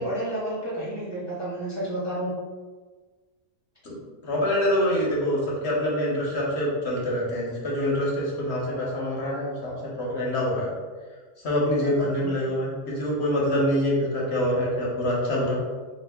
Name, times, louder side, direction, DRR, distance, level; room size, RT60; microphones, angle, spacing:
voice 1, 0.0-2.3 11.7-11.9 12.2-12.3, right 1 dB, 30° right, -8 dB, 0.5 m, -31 dB
voice 2, 4.2-10.7 11.4-15.6, equal, 55° left, -5 dB, 1.1 m, -25 dB
2.8 x 2.8 x 3.4 m, 1.4 s
omnidirectional pair, 1.5 m